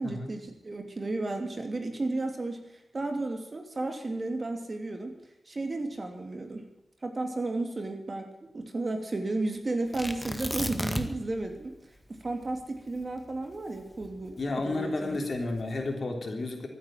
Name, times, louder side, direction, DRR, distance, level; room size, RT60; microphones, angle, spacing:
voice 1, 0.0-2.6 2.9-5.1 5.5-6.7 7.0-11.8 12.1-15.2, right 2 dB, 45° right, 5 dB, 3.0 m, -33 dB
Tearing, 9.9-11.3 11.6-11.7 12.3-14.6 15.3-15.8, equal, 5° left, 1.9 m, -34 dB
voice 2, 14.4-16.7, left 2 dB, 60° left, 3 dB, 3.5 m, -32 dB
15.0 x 9.6 x 9.0 m, 0.89 s
cardioid pair, 70°, 0 cm